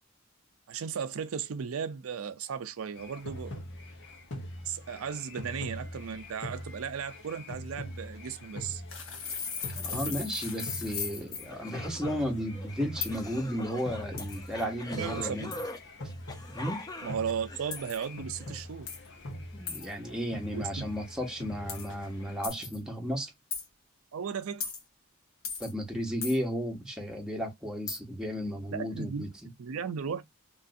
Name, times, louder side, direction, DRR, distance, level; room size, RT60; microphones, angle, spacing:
voice 1, 0.7-3.6 4.6-8.8 9.9-10.1 15.0-15.5 17.0-18.9 20.5-20.8 24.1-24.7 28.7-29.2 29.6-30.2, right 7 dB, 80° right, 0.4 m, -36 dB
sound 1, 2.9-22.5, left 1 dB, 60° left, 0.9 m, -43 dB
sound 2, 8.9-11.5 13.0-13.2 14.2-14.6 15.5-15.8 17.7-18.0 18.9-19.1 19.7-19.9 21.7-21.9 22.4-22.8 23.5-23.7 24.6-24.8 25.4-25.7 26.2-26.4 27.9-28.0, left 6 dB, 80° left, 1.2 m, -37 dB
voice 2, 9.8-15.6 16.5-16.9 19.5-23.3 25.6-29.5, equal, 5° right, 0.9 m, -34 dB
sound 3, 11.5-18.6, left 1 dB, 20° left, 0.6 m, -43 dB
3.1 x 2.6 x 2.4 m
head